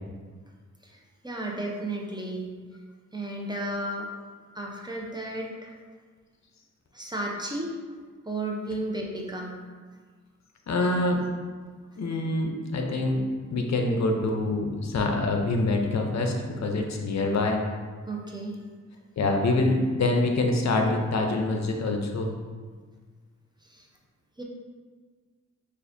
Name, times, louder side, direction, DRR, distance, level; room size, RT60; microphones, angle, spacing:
voice 1, 0.8-2.5 3.1-4.1 4.5-5.7 6.9-7.7 8.2-9.6 13.9-14.0 18.1-18.5 23.6-23.8 24.4-24.5, right 1 dB, 15° right, -2 dB, 0.7 m, -33 dB
voice 2, 10.7-11.2 12.0-13.2 13.5-16.4 16.6-17.6 19.2-22.3, left 2 dB, 60° left, 2 dB, 0.6 m, -25 dB
6.7 x 2.4 x 2.6 m, 1.5 s
cardioid pair, 65°, 31 cm